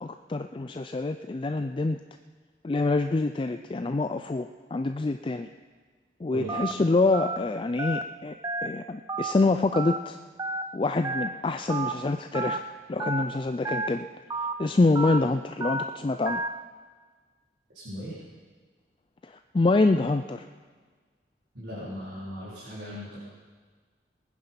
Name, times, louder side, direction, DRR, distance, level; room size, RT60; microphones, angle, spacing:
voice 1, 0.0-2.0 2.6-5.5 6.2-8.3 8.6-10.2 10.7-12.6 12.9-14.1 14.6-16.4 19.2-20.5, left 3 dB, 30° left, 7 dB, 0.4 m, -26 dB
Telephone, 6.5-6.7 7.1-7.4 7.8-8.0 8.4-8.7 9.1-9.3 9.7-10.0 10.4-10.6 11.0-11.3 11.7-11.9 12.3-12.6 13.0-13.2 13.6-13.9 14.3-14.5 15.0-15.2 15.6-15.8 16.3-16.5, right 3 dB, 20° right, 0.5 m, -30 dB
voice 2, 17.7-18.2 21.5-23.2, equal, 75° right, -10 dB, 3.9 m, -38 dB
20.5 x 9.7 x 5.8 m, 1.5 s
head